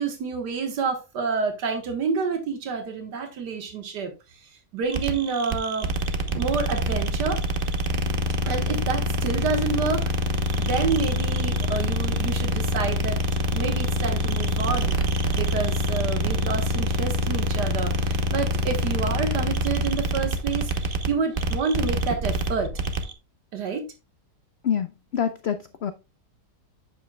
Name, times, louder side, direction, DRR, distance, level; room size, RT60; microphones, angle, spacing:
voice 1, 0.0-4.1 4.4-5.9 6.4-7.4 8.4-10.1 10.6-13.2 13.5-22.7 23.5-23.9, right 5 dB, 90° right, 1.9 m, -28 dB
sound 1, 4.9-23.1, equal, 40° right, 1.0 m, -25 dB
voice 2, 25.1-25.9, left 8 dB, 85° left, 0.5 m, -26 dB
8.9 x 7.4 x 2.2 m
omnidirectional pair, 1.8 m